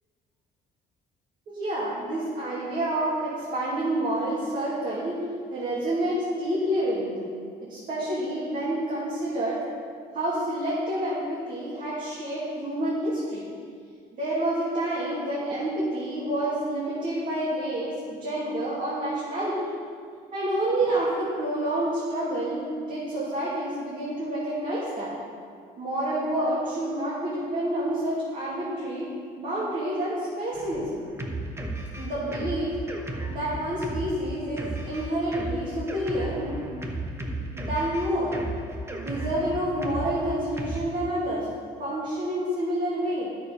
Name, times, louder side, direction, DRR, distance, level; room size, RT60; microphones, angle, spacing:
voice 1, 1.5-5.2 5.5-7.3 7.6-9.6 10.1-13.4 14.1-19.7 20.3-25.1 25.8-29.1 29.4-31.1 32.0-32.8 33.3-36.7 37.5-38.4 38.9-41.5 41.8-43.4, right 1 dB, 55° right, -8 dB, 2.6 m, -28 dB
Drum kit, 30.5-40.8, right 1 dB, 15° right, 1.0 m, -35 dB
9.5 x 6.8 x 5.2 m, 2.1 s
cardioid pair, 110°, 17 cm